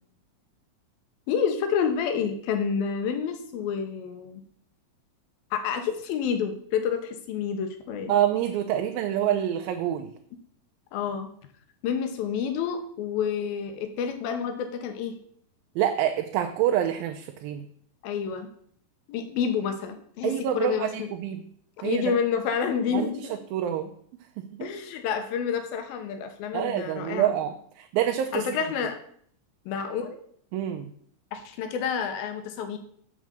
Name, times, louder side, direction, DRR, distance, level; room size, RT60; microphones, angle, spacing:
voice 1, 1.3-4.4 5.5-8.1 10.9-11.3 11.8-15.2 18.0-18.5 19.1-21.1 21.8-23.4 24.6-27.3 28.3-29.0 29.7-30.2 31.3-32.8, left 7 dB, 90° left, 6 dB, 2.8 m, -29 dB
voice 2, 8.1-10.1 15.8-17.7 20.2-21.4 21.8-22.2 22.9-23.1 23.5-23.9 24.4-24.7 26.5-28.4 30.5-30.9, right 11 dB, 85° right, 5 dB, 2.5 m, -27 dB
7.3 x 6.2 x 7.0 m, 0.62 s
omnidirectional pair, 4.1 m